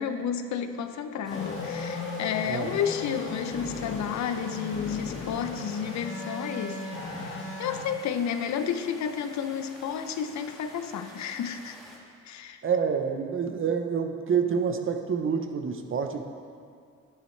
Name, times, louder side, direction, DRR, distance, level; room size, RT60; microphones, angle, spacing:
voice 1, 0.0-6.9 7.6-11.8 12.2-12.6, left 8 dB, 65° left, 9 dB, 0.7 m, -31 dB
sound 1, 1.2-12.0, equal, ahead, 2.1 m, -49 dB
sound 2, 1.3-7.8, left 3 dB, 40° left, 1.5 m, -36 dB
voice 2, 12.6-16.2, right 6 dB, 45° right, 6 dB, 0.9 m, -27 dB
10.5 x 10.5 x 3.3 m, 2.3 s
cardioid pair, 90°, 30 cm